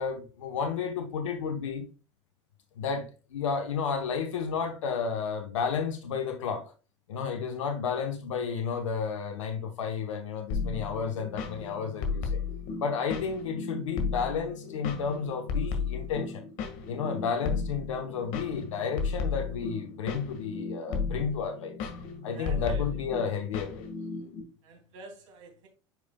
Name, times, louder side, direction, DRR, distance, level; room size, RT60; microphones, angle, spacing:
voice 1, 0.0-1.9 2.8-6.7 7.1-12.4 12.8-16.4 16.9-21.9 22.2-23.9, left 6 dB, 80° left, 0.9 m, -32 dB
sound 1, 10.5-24.4, left 5 dB, 60° left, 1.7 m, -34 dB
voice 2, 22.3-22.9 24.6-25.7, right 3 dB, 75° right, 2.8 m, -48 dB
9.1 x 5.2 x 2.3 m
hypercardioid pair, 85°, 16 cm